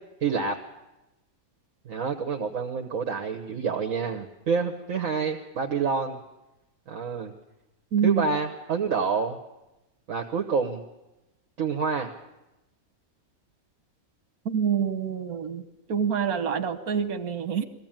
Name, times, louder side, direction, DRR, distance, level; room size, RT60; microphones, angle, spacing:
voice 1, 0.2-0.6 1.8-6.2 6.9-7.3 8.0-9.4 10.1-10.8 11.6-12.1, right 5 dB, 65° right, 3 dB, 1.6 m, -27 dB
voice 2, 7.9-8.2 14.5-15.6 15.9-17.6, right 7 dB, 80° right, 10 dB, 1.5 m, -26 dB
21.5 x 15.5 x 9.0 m, 0.98 s
omnidirectional pair, 1.5 m